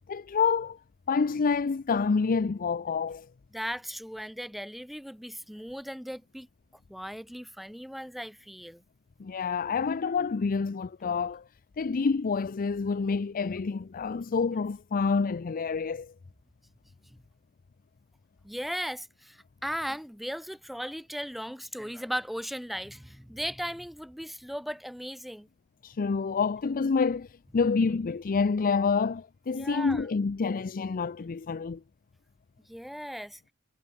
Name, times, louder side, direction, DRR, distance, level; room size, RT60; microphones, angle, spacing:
voice 1, 0.1-0.8 1.1-3.3 9.2-11.4 11.8-16.1 25.8-27.3 27.5-31.8, left 5 dB, 40° left, 0.5 m, -27 dB
voice 2, 3.5-6.5 6.9-8.8 18.4-25.5 29.5-30.1 32.7-33.4, equal, ahead, 5.2 m, -37 dB
head